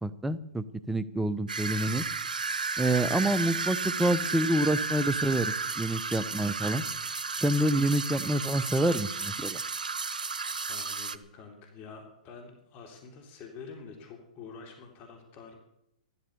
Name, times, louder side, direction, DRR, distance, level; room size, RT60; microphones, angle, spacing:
voice 1, 0.0-2.0 2.8-6.8 7.4-9.6, right 1 dB, 5° right, 14 dB, 0.8 m, -27 dB
sound 1, 1.5-11.2, right 4 dB, 85° right, 0.9 m, -33 dB
voice 2, 10.7-15.5, left 5 dB, 35° left, 3 dB, 3.7 m, -47 dB
14.5 x 12.5 x 6.9 m, 0.78 s
hypercardioid pair, 120°, 4 cm